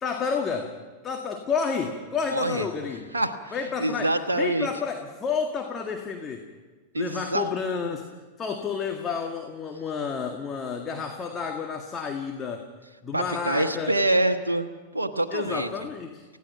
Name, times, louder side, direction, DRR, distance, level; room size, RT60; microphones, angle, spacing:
voice 1, 0.0-0.7 1.0-3.0 3.5-6.5 7.0-12.7 13.0-13.9 15.3-16.2, left 5 dB, 25° left, 3 dB, 1.9 m, -30 dB
voice 2, 2.3-2.7 3.1-3.5 3.8-4.7 6.9-7.5 13.1-15.7, right 1 dB, 80° right, 4 dB, 1.3 m, -26 dB
29.0 x 16.5 x 6.0 m, 1.4 s
figure-of-eight pair, 90°, 0 cm